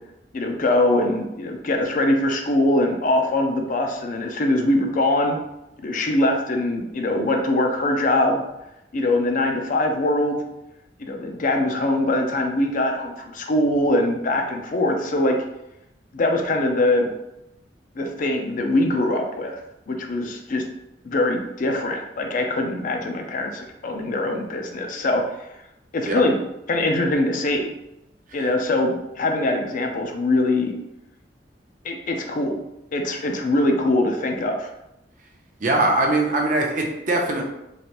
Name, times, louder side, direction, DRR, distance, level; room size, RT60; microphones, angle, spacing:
voice 1, 0.3-5.4 5.8-8.4 8.9-10.4 11.0-15.4 16.1-17.1 18.0-19.6 19.9-20.6 21.0-25.2 25.9-26.3 26.7-27.7 28.3-30.7 31.8-32.6 32.9-34.7, left 1 dB, 50° left, 3 dB, 0.4 m, -22 dB
voice 2, 35.6-37.4, right 2 dB, 50° right, 0 dB, 0.6 m, -21 dB
3.2 x 2.5 x 2.9 m, 0.88 s
head